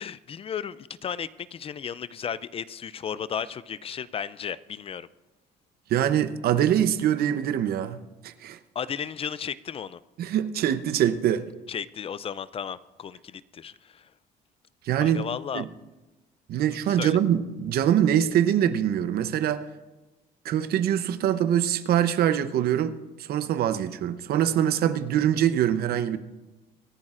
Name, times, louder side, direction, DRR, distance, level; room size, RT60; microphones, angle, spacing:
voice 1, 0.0-5.1 8.8-10.0 11.7-14.1 15.0-15.6 16.9-17.2, left 8 dB, 35° left, 0.4 m, -34 dB
voice 2, 5.9-8.6 10.2-11.5 14.8-15.2 15.5-15.7 16.5-19.6 20.4-23.0 23.3-26.2, right 10 dB, 65° right, 0.7 m, -24 dB
25.0 x 10.5 x 2.5 m
cardioid pair, 110°, 17 cm